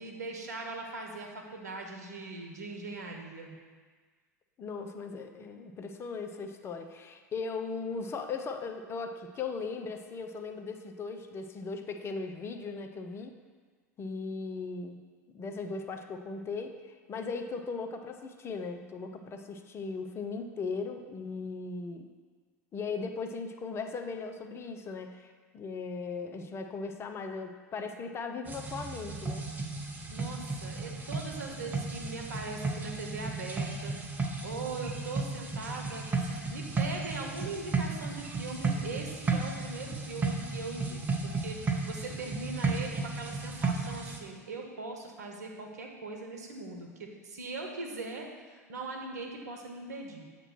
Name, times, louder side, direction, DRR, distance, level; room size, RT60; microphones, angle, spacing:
voice 1, 0.0-3.6 30.1-33.9 34.2-50.3, right 3 dB, 75° right, 2 dB, 1.0 m, -40 dB
voice 2, 4.6-13.3 14.0-15.0 15.3-22.1 22.7-29.5, left 4 dB, 30° left, 5 dB, 0.6 m, -38 dB
sound 1, 28.5-44.2, right 3 dB, 20° right, 0.8 m, -34 dB
7.8 x 3.0 x 6.0 m, 1.5 s
figure-of-eight pair, 85°, 9 cm